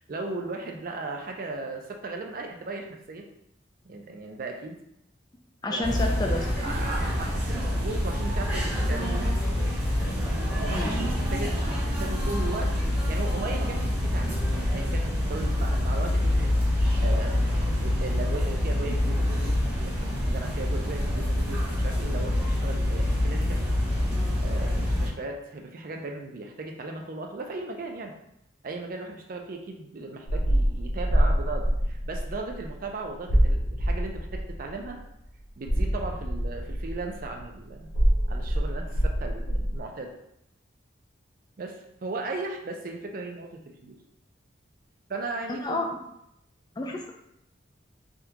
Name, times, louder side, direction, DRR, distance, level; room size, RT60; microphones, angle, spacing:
voice 1, 0.0-3.3 3.9-4.8 5.7-6.1 6.6-9.3 10.6-23.6 24.4-28.1 28.6-35.0 35.6-37.9 38.3-40.1 41.6-44.0 45.1-45.9, right 3 dB, 45° right, 3 dB, 0.4 m, -37 dB
voice 2, 5.6-6.5 10.7-10.9 45.5-45.9 46.8-47.1, left 2 dB, 20° left, 1 dB, 0.3 m, -29 dB
sound 1, 5.8-25.1, left 1 dB, 10° right, 1.0 m, -26 dB
sound 2, 30.3-32.9 33.3-35.1 35.7-39.8, equal, 85° left, 0.6 m, -26 dB
3.5 x 2.3 x 2.8 m, 0.79 s
head